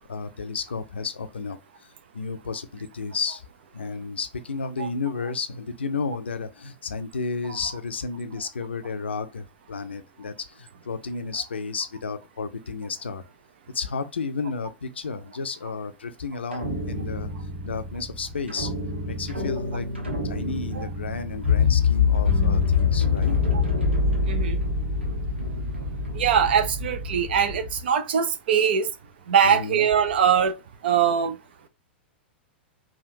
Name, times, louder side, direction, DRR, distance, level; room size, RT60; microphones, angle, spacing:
voice 1, 0.1-1.9 2.1-3.4 3.7-13.2 13.7-17.3 17.6-18.7 19.1-19.9 20.2-23.4 29.4-29.9, left 4 dB, 80° left, 0.5 m, -32 dB
sound 1, 16.5-27.8, left 4 dB, 85° right, 1.0 m, -25 dB
voice 2, 24.3-24.6 26.1-28.9 29.3-30.5 30.8-31.3, right 8 dB, 60° right, 0.5 m, -22 dB
3.5 x 2.3 x 2.7 m
figure-of-eight pair, 100°, 6 cm